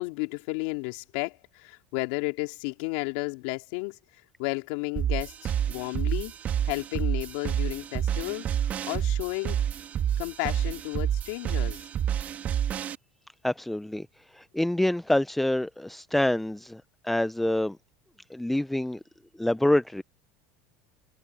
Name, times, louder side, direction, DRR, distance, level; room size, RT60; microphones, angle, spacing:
voice 1, 0.0-6.3 6.7-9.6 10.2-11.8, left 26 dB, 75° left, 3.2 m, -33 dB
sound 1, 5.0-13.0, right 9 dB, 40° right, 2.5 m, -29 dB
voice 2, 13.4-14.1 14.3-17.8 18.3-19.0 19.4-20.0, left 1 dB, 5° left, 0.5 m, -26 dB
supercardioid pair, 105°, 4 cm